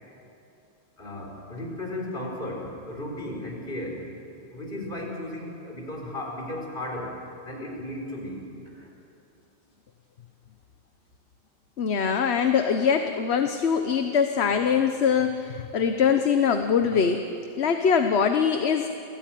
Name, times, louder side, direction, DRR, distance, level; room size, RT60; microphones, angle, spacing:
voice 1, 1.0-4.1 4.5-7.2 7.4-8.4 8.7-8.9, left 1 dB, 50° left, 0 dB, 4.7 m, -35 dB
voice 2, 11.8-17.2 17.6-18.9, left 6 dB, 70° left, 7 dB, 1.2 m, -23 dB
28.5 x 16.0 x 9.2 m, 2.8 s
omnidirectional pair, 1.1 m